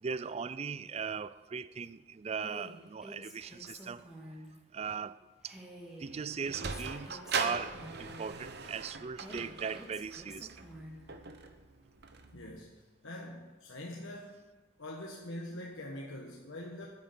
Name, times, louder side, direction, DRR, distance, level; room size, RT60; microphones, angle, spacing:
voice 1, 0.0-4.5 4.7-5.6 6.0-10.6, right 6 dB, 30° right, 0.3 m, -39 dB
Female speech woman speaking, 2.4-4.5 5.4-8.3 9.1-11.0, equal, ahead, 2.0 m, -49 dB
Sliding door, 6.0-12.6, right 4 dB, 50° right, 0.9 m, -40 dB
voice 2, 12.3-12.7 13.0-14.4 14.8-16.9, left 1 dB, 70° left, 1.3 m, -43 dB
9.6 x 8.4 x 9.0 m
head